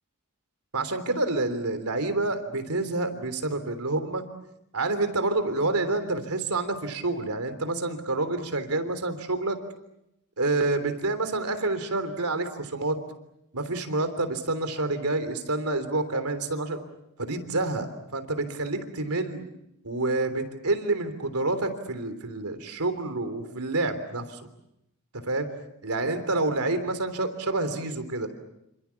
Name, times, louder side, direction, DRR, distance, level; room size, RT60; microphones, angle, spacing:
voice 1, 0.7-4.2 4.7-9.6 10.4-13.0 13.5-16.8 17.2-19.4 19.8-24.4 25.2-25.5 25.8-28.3, right 2 dB, 80° right, 9 dB, 3.4 m, -28 dB
27.5 x 26.5 x 7.2 m, 0.82 s
head